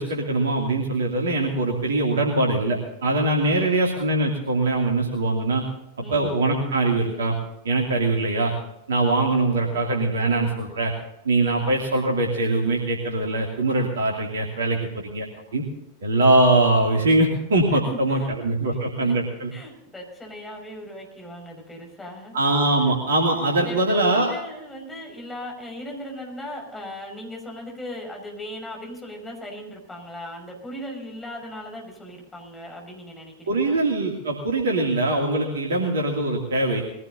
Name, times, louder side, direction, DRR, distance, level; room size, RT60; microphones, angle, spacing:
voice 1, 0.0-5.6 6.1-7.4 7.6-8.5 8.9-10.9 11.2-15.2 15.5-15.6 16.0-19.5 22.3-24.3 33.5-36.8, right 2 dB, 65° right, 0 dB, 2.6 m, -22 dB
voice 2, 9.5-9.8 17.7-19.1 19.5-22.9 23.5-33.8 35.7-35.9, left 1 dB, 10° left, 1 dB, 5.8 m, -38 dB
22.0 x 17.0 x 2.8 m, 0.87 s
figure-of-eight pair, 90°, 0 cm